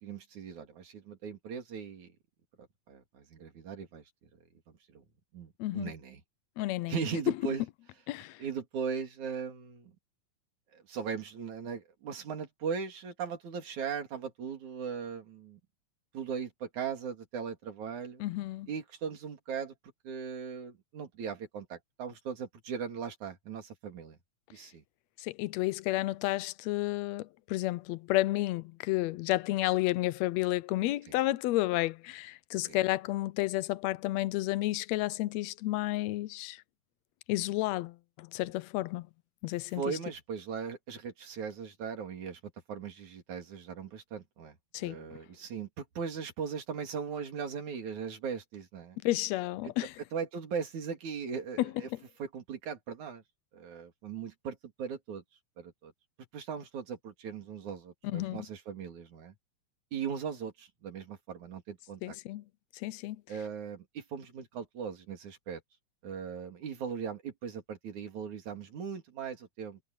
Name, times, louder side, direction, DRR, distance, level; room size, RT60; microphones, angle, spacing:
voice 1, 0.0-2.1 2.6-4.0 4.9-5.0 5.3-6.2 6.9-7.6 8.4-9.9 10.7-15.6 16.1-18.2 18.7-19.7 20.0-24.2 24.5-24.8 31.1-31.2 32.7-32.8 39.7-42.4 42.7-49.0 49.6-49.7 50.1-51.9 52.2-53.2 53.5-55.2 55.6-55.9 56.3-59.3 59.9-62.2 63.3-65.6 66.0-69.8, right 6 dB, 80° right, 4.3 m, -39 dB
voice 2, 5.6-5.9 6.6-6.9 8.1-8.4 18.2-18.7 25.2-36.6 37.3-39.1 39.4-40.0 44.7-45.0 49.0-49.9 51.6-51.7 58.0-58.4 62.0-62.4 62.7-63.2, left 17 dB, 80° left, 1.7 m, -31 dB
omnidirectional pair, 3.3 m